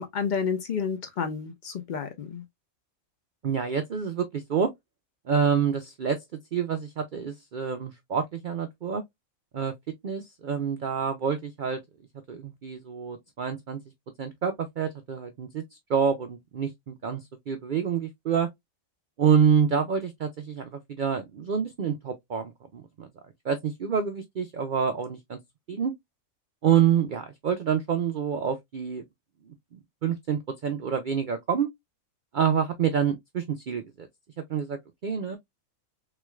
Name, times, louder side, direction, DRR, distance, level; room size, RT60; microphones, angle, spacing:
voice 1, 0.0-2.4, left 6 dB, 85° left, 0.4 m, -30 dB
voice 2, 3.4-4.7 5.3-6.2 6.5-9.0 9.5-9.7 10.0-11.8 12.3-13.8 14.2-15.6 15.9-18.5 19.2-23.1 23.4-25.4 25.7-25.9 26.6-29.0 29.7-31.7 32.3-34.1 34.5-35.4, right 7 dB, 80° right, 0.4 m, -27 dB
3.7 x 3.1 x 2.2 m
omnidirectional pair, 1.5 m